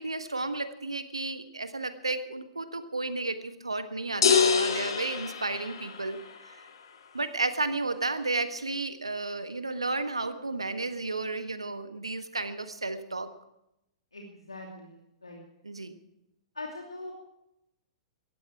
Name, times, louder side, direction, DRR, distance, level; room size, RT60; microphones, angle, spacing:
voice 1, 0.0-6.6 7.1-13.3 15.6-16.0, right 3 dB, 85° right, 10 dB, 1.4 m, -33 dB
sound 1, 4.2-6.3, left 6 dB, 65° left, 2.3 m, -25 dB
voice 2, 14.1-15.4 16.5-17.1, left 2 dB, 85° left, 0 dB, 2.6 m, -42 dB
17.5 x 15.0 x 4.6 m, 0.84 s
figure-of-eight pair, 105°, 3 cm